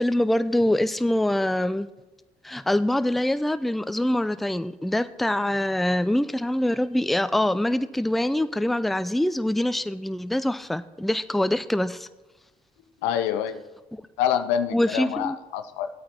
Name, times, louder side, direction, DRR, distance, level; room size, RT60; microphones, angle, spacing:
voice 1, 0.0-1.9 2.4-12.1 13.9-14.0 14.7-15.4, left 1 dB, ahead, 13 dB, 0.4 m, -24 dB
voice 2, 13.0-13.6 14.2-15.9, left 9 dB, 80° left, 10 dB, 0.6 m, -26 dB
16.0 x 8.6 x 2.8 m, 1.1 s
hypercardioid pair, 45°, 19 cm